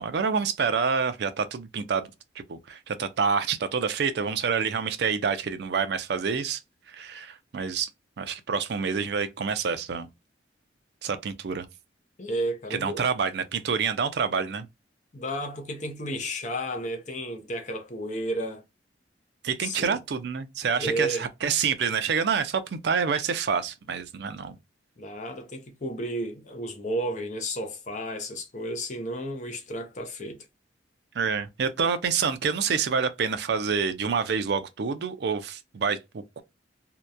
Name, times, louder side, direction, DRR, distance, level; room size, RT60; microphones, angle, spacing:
voice 1, 0.0-2.1 2.5-6.6 6.9-7.9 8.2-10.1 11.0-11.7 12.7-14.7 19.4-24.6 31.1-36.4, right 6 dB, 60° right, 0.4 m, -27 dB
voice 2, 12.2-13.0 15.1-18.6 19.6-20.0 20.8-21.2 25.0-30.4, right 1 dB, 40° left, 0.5 m, -32 dB
2.7 x 2.1 x 2.2 m
head